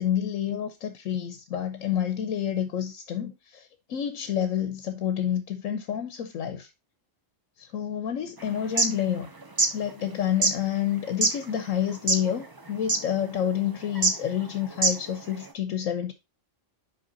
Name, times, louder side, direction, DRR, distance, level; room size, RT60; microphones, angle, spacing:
voice 1, 0.0-3.6 3.9-6.7 7.6-9.3 9.7-16.1, left 9 dB, 90° left, 1.2 m, -29 dB
sound 1, 8.6-8.9 9.4-9.7 10.4-10.5 11.2-11.3 11.9-12.3 12.6-12.7 12.9-13.0 13.9-14.1 14.7-15.1, right 3 dB, 25° right, 0.5 m, -22 dB
5.7 x 5.0 x 3.8 m
omnidirectional pair, 1.3 m